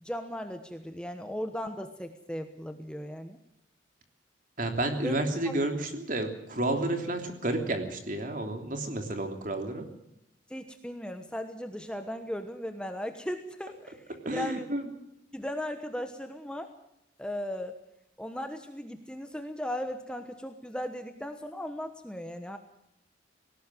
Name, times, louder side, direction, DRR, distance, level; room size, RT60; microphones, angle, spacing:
voice 1, 0.0-3.4 5.0-5.2 5.4-5.6 10.5-14.0 14.3-14.7 15.3-16.7 17.2-17.8 18.2-22.6, left 1 dB, 5° left, 7 dB, 1.1 m, -37 dB
voice 2, 4.6-9.8 14.2-14.9, right 1 dB, 45° right, 5 dB, 3.2 m, -31 dB
19.0 x 18.0 x 7.7 m, 0.80 s
head